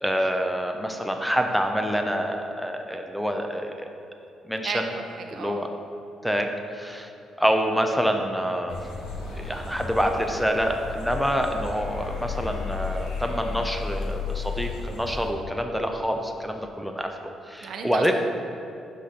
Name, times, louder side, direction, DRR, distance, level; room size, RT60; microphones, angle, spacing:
voice 1, 0.0-3.9 4.4-4.9 5.3-5.7 6.2-7.1 7.4-8.9 9.3-17.1 17.4-18.1, equal, ahead, 3 dB, 0.5 m, -26 dB
voice 2, 4.6-5.6 17.6-18.1, right 5 dB, 70° right, 4 dB, 0.7 m, -34 dB
sound 1, 8.7-15.3, left 4 dB, 85° left, 1.0 m, -33 dB
5.9 x 4.1 x 5.7 m, 2.7 s
cardioid pair, 90°, 0 cm